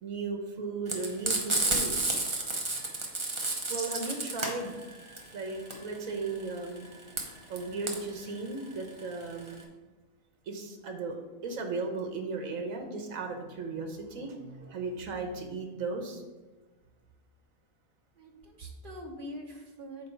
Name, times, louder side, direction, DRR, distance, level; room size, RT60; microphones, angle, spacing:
voice 1, 0.0-2.0 3.7-6.9 7.5-9.7 10.5-11.2 11.4-16.2, right 3 dB, 80° right, 4 dB, 1.4 m, -36 dB
Frying (food), 0.9-9.6, right 2 dB, 25° right, 0.9 m, -31 dB
voice 2, 18.2-20.1, equal, 40° right, 0 dB, 1.4 m, -44 dB
8.6 x 3.3 x 5.7 m, 1.2 s
omnidirectional pair, 1.4 m